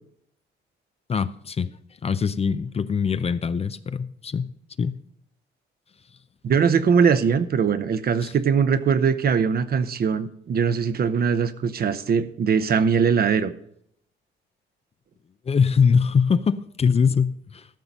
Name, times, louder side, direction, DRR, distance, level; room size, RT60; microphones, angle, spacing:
voice 1, 1.1-1.7 2.0-4.5 4.8-5.0 8.2-8.3 15.5-17.7, left 6 dB, 30° left, 0.5 m, -22 dB
voice 2, 6.4-13.5, right 6 dB, 50° right, 0.8 m, -21 dB
13.5 x 5.9 x 5.2 m
cardioid pair, 90°, 20 cm